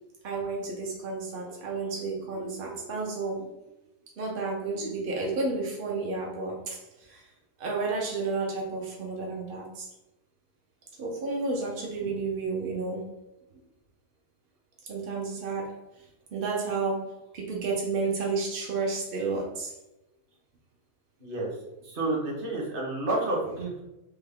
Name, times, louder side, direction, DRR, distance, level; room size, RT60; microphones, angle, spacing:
voice 1, 0.2-3.5 4.2-6.8 7.1-7.2 7.6-9.9 11.0-13.2 14.9-15.7 16.3-19.7, right 3 dB, 65° right, -2 dB, 0.5 m, -31 dB
voice 2, 21.8-23.8, right 2 dB, 45° right, -2 dB, 0.8 m, -30 dB
3.4 x 2.1 x 3.4 m, 0.96 s
omnidirectional pair, 1.6 m